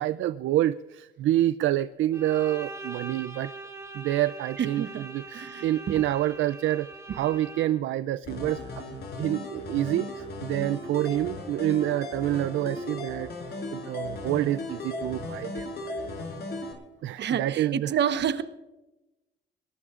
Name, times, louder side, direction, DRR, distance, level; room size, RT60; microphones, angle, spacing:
voice 1, 0.0-3.5 3.9-6.9 7.1-13.3 13.7-16.0 17.0-17.9, right 13 dB, 80° right, 14 dB, 0.5 m, -27 dB
Bowed string instrument, 2.1-7.9, right 2 dB, 15° right, 2.3 m, -42 dB
voice 2, 4.6-5.0 5.3-6.1 17.2-18.4, right 8 dB, 60° right, 10 dB, 1.1 m, -29 dB
sound 1, 8.3-16.7, left 2 dB, 55° left, 5.7 m, -36 dB
22.0 x 18.5 x 2.5 m, 1.0 s
cardioid pair, 90°, 20 cm